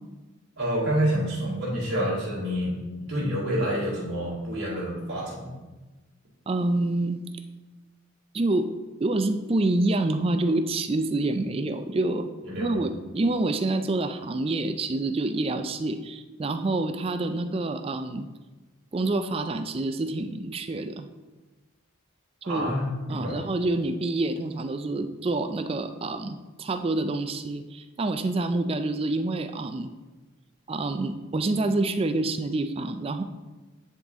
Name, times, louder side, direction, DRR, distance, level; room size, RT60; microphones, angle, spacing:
voice 1, 0.6-5.5 12.4-12.8 22.4-23.4, equal, 50° right, -8 dB, 2.2 m, -28 dB
voice 2, 6.5-7.2 8.3-8.7 9.0-12.3 12.6-18.3 18.9-21.1 22.5-22.7 23.1-29.9 30.7-33.2, right 2 dB, 25° right, 9 dB, 0.3 m, -27 dB
9.8 x 4.0 x 3.6 m, 1.2 s
head